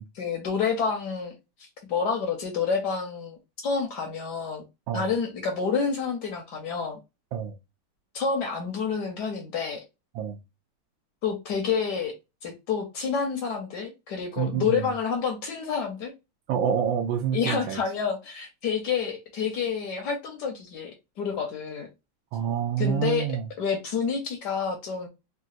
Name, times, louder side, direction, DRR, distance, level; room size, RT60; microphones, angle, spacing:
voice 1, 0.2-1.3 1.9-4.6 4.9-7.0 8.1-9.8 11.2-12.1 12.4-16.1 17.3-21.9 22.8-25.1, left 6 dB, 65° left, 1.2 m, -29 dB
voice 2, 14.4-14.8 16.5-17.8 22.3-23.5, right 8 dB, 75° right, 1.2 m, -27 dB
3.8 x 2.3 x 2.5 m
omnidirectional pair, 2.3 m